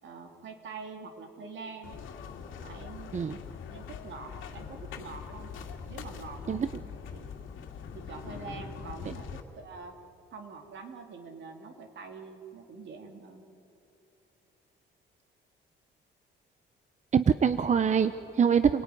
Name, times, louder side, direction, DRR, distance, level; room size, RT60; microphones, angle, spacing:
voice 1, 0.0-2.0 2.6-3.1 3.7-5.5 5.9-6.6 7.1-7.3 7.9-9.9 10.3-13.4, right 4 dB, 65° right, 4 dB, 3.1 m, -45 dB
sound 1, 1.8-9.4, left 6 dB, 85° left, 2.2 m, -42 dB
voice 2, 17.1-18.8, right 7 dB, 35° right, 11 dB, 0.8 m, -24 dB
29.0 x 18.5 x 9.6 m, 2.8 s
cardioid pair, 90°, 20 cm